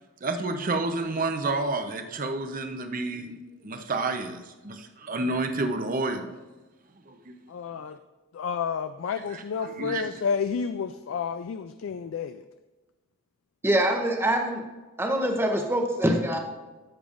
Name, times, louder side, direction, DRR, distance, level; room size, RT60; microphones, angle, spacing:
voice 1, 0.2-3.4 3.6-6.3 7.1-7.3 9.3-10.1, right 2 dB, 40° right, 6 dB, 0.7 m, -30 dB
voice 2, 7.5-8.0 8.3-12.4, left 6 dB, 65° left, 11 dB, 0.3 m, -30 dB
voice 3, 13.6-14.6 15.0-16.4, right 1 dB, 10° right, 3 dB, 0.8 m, -24 dB
13.5 x 6.9 x 2.5 m, 1.2 s
head